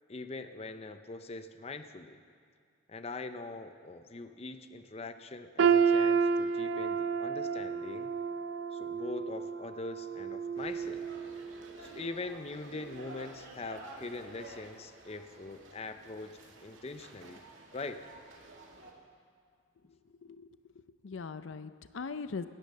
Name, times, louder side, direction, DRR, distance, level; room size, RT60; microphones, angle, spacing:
voice 1, 0.1-2.2 2.9-8.1 8.7-11.1 11.8-17.4 17.7-18.0, left 3 dB, 30° left, 9 dB, 0.5 m, -42 dB
sound 1, 5.6-11.5 11.9-12.2 12.9-13.0, right 6 dB, 70° right, 0.4 m, -30 dB
sound 2, 10.5-18.9, right 2 dB, 85° right, 2.1 m, -51 dB
voice 2, 20.2-22.4, left 4 dB, 75° left, 12 dB, 0.5 m, -41 dB
17.5 x 10.0 x 6.6 m, 2.2 s
head